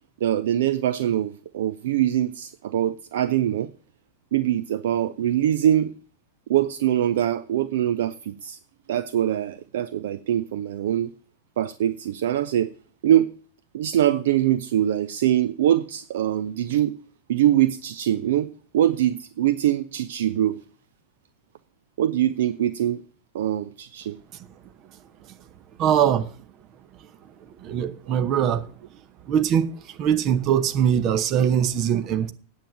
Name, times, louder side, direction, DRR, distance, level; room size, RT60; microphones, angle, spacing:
voice 1, 0.2-3.7 4.3-5.9 6.5-8.6 8.9-11.1 11.6-12.7 13.0-13.3 13.7-16.9 17.3-18.5 18.7-20.6 22.0-23.0 23.3-24.2 28.1-28.2, right 11 dB, 60° right, 0.4 m, -23 dB
voice 2, 25.8-26.3 27.6-28.7 29.3-32.3, right 9 dB, 35° right, 0.9 m, -22 dB
9.0 x 8.1 x 6.0 m
figure-of-eight pair, 90°, 0 cm